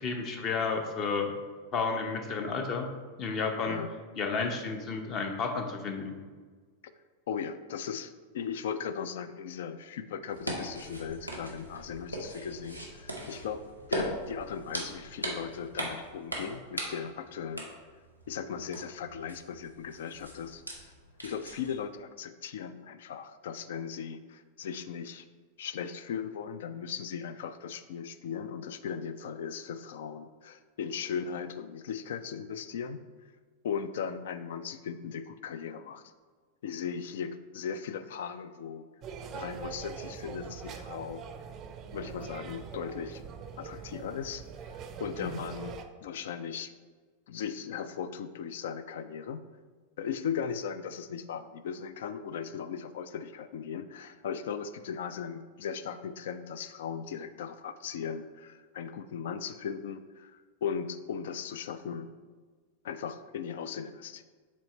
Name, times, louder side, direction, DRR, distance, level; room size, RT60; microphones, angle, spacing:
voice 1, 0.0-1.3 1.7-2.9 3.2-3.8 4.2-6.2 45.2-45.3, left 4 dB, 35° left, 4 dB, 0.8 m, -31 dB
voice 2, 7.3-17.7 18.3-20.6 21.2-25.3 25.6-33.0 33.6-36.0 36.6-38.9 39.3-41.2 41.9-43.2 43.6-45.8 46.0-46.7 47.3-49.4 50.0-62.1 62.8-64.2, left 7 dB, 60° left, 12 dB, 0.3 m, -38 dB
sound 1, 10.3-21.8, right 1 dB, 90° left, 1.0 m, -40 dB
Lunch room ambiance, 39.0-45.8, right 6 dB, 30° right, 0.4 m, -43 dB
7.2 x 3.1 x 4.2 m, 1.5 s
figure-of-eight pair, 90°, 0 cm